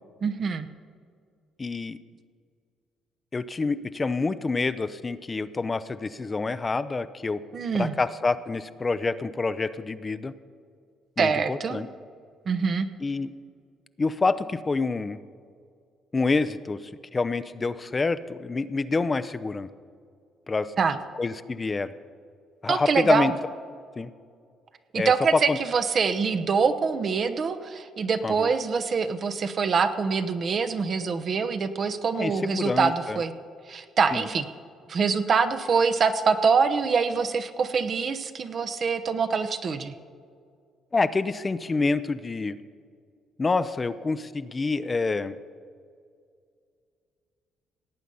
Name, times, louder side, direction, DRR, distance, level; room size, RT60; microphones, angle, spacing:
voice 1, 0.2-0.7 7.5-7.9 11.2-11.8 12.5-12.9 20.8-21.0 22.7-23.3 24.9-33.3 33.7-34.5 34.9-39.9, right 5 dB, 50° right, 10 dB, 0.9 m, -24 dB
voice 2, 1.6-2.0 3.3-7.4 7.7-10.3 11.2-11.9 13.0-13.3 14.0-15.2 16.1-16.8 17.1-19.7 20.5-20.7 21.2-21.9 22.6-23.3 24.0-24.1 24.9-25.6 28.2-28.5 32.1-33.2 34.1-34.3 40.9-42.6 43.4-45.3, left 3 dB, 30° left, 13 dB, 0.6 m, -27 dB
17.5 x 8.3 x 5.5 m, 2.2 s
supercardioid pair, 60°, 0 cm